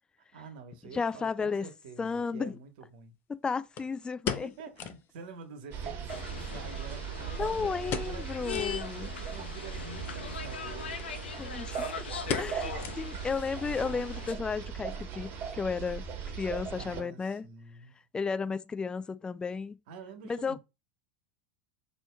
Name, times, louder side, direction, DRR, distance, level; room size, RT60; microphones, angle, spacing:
voice 1, 0.3-3.2 4.4-7.7 8.0-8.3 8.9-11.2 16.7-18.0 19.9-20.6, right 5 dB, 60° right, 1.2 m, -48 dB
voice 2, 0.9-1.7 2.0-2.6 3.3-4.5 7.4-9.1 11.4-11.9 12.4-16.0 16.4-17.5 18.1-19.8 20.3-20.6, left 5 dB, 15° left, 0.4 m, -33 dB
sound 1, 1.7-1.8 3.8-5.1 5.4-5.5 5.8-5.9 6.5-7.4 7.9-8.2 8.5-8.8 9.3-9.4 10.3-10.6 11.0-11.1 11.4-11.7 12.3-13.4 13.7-13.8 14.3-14.7 15.0-15.1, left 7 dB, 40° left, 0.7 m, -37 dB
sound 2, 5.7-17.0, right 6 dB, 40° right, 1.3 m, -39 dB
sound 3, 6.1-14.3, left 6 dB, 80° left, 0.7 m, -41 dB
6.0 x 3.0 x 2.3 m
hypercardioid pair, 90°, 6 cm